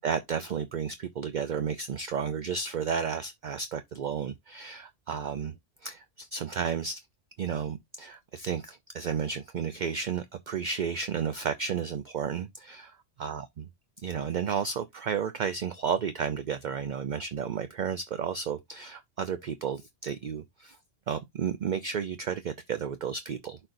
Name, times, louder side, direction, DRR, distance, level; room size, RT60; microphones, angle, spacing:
voice 1, 0.0-5.6 5.8-7.0 7.4-12.9 13.2-13.7 14.0-20.8 21.1-23.6, right 7 dB, 50° right, 0.6 m, -32 dB
11.5 x 4.4 x 2.6 m
omnidirectional pair, 1.2 m